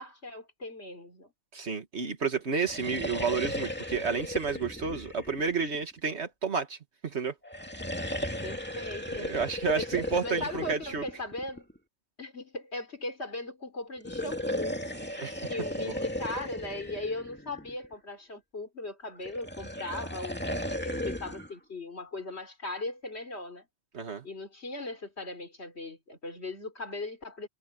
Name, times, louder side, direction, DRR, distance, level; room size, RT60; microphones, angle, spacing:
voice 1, 0.0-1.3 8.4-9.3 9.8-11.7 12.2-14.8 15.5-20.4 20.7-23.7 24.2-27.5, left 2 dB, 80° left, 3.9 m, -38 dB
voice 2, 1.5-6.8 7.0-7.3 8.1-8.2 9.1-11.0 15.2-15.5 15.8-15.9 23.9-24.3, right 5 dB, 85° right, 2.1 m, -31 dB
sound 1, 2.5-6.1 7.4-11.8 13.9-17.9 19.2-21.5, left 1 dB, 10° left, 2.3 m, -36 dB
omnidirectional pair, 1.1 m